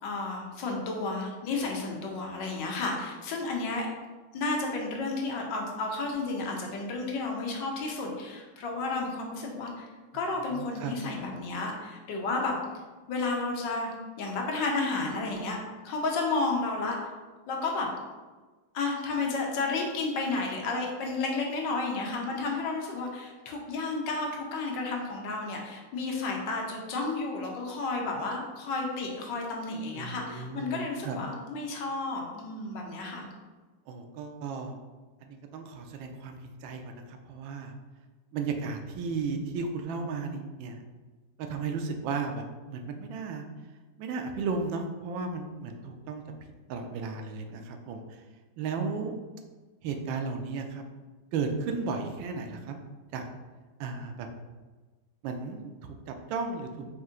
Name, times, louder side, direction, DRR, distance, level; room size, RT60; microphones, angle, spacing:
voice 1, 0.0-3.9 4.3-9.9 10.1-12.5 13.1-13.9 14.2-17.1 17.5-17.9 18.7-33.3, left 3 dB, 75° left, 0 dB, 1.4 m, -32 dB
voice 2, 10.5-10.9 29.9-31.2 33.9-34.8 35.2-37.7 38.3-40.8 41.4-43.4 44.0-46.2 46.7-48.0 48.6-49.1 49.8-50.8 51.3-52.7 53.1-53.3 53.8-54.3 55.2-56.9, right 4 dB, 90° right, 5 dB, 1.3 m, -34 dB
4.4 x 2.7 x 3.6 m, 1.3 s
omnidirectional pair, 2.0 m